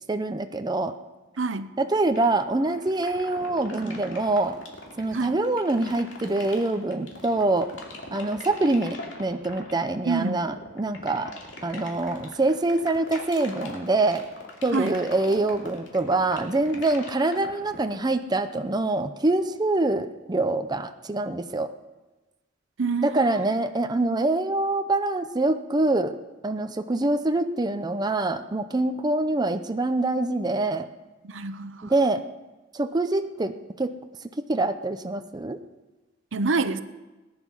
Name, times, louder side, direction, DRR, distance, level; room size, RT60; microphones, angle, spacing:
voice 1, 0.1-0.9 1.8-4.6 5.0-7.7 8.1-11.3 11.6-14.2 14.6-21.7 23.0-26.2 26.4-30.9 31.8-32.2 32.7-33.9 34.4-35.6, right 2 dB, 20° right, 8 dB, 0.6 m, -25 dB
voice 2, 1.4-1.7 5.1-5.4 10.1-10.4 14.7-15.0 22.8-23.3 31.2-31.9 36.3-36.8, right 4 dB, 80° right, 13 dB, 0.7 m, -27 dB
sound 1, 2.1-18.1, left 2 dB, 70° left, 2.7 m, -41 dB
19.0 x 10.5 x 5.5 m, 1.1 s
head